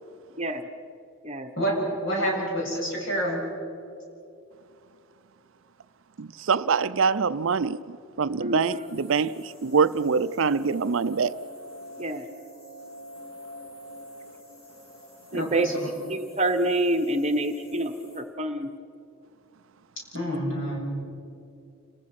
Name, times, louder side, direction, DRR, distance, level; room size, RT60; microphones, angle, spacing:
voice 1, 0.4-0.7 1.2-1.5 8.4-8.9 12.0-12.3 15.3-15.7 16.0-18.7, right 1 dB, 30° right, 1.0 m, -27 dB
voice 2, 2.0-3.4 15.3-15.9 20.1-20.8, equal, 60° left, 7.2 m, -28 dB
voice 3, 6.2-7.8 8.2-11.4, right 5 dB, 60° right, 0.5 m, -24 dB
sound 1, 8.8-18.2, equal, 75° left, 7.2 m, -46 dB
29.0 x 20.5 x 6.0 m
head